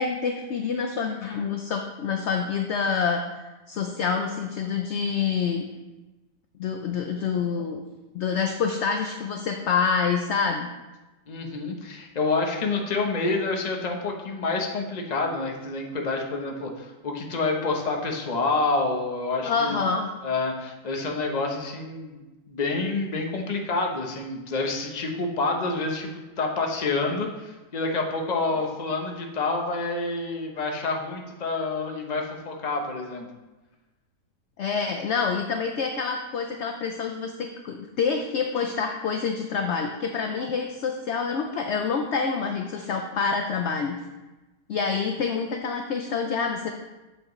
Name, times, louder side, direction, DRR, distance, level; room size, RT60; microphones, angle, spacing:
voice 1, 0.0-3.2 3.7-5.6 6.6-7.8 8.1-10.7 19.4-20.1 34.6-44.0 44.7-46.7, left 5 dB, 65° left, 4 dB, 0.7 m, -27 dB
voice 2, 11.3-19.8 20.2-22.2 22.5-33.3, left 3 dB, 35° left, 2 dB, 0.8 m, -28 dB
7.8 x 7.4 x 3.1 m, 1.1 s
omnidirectional pair, 1.7 m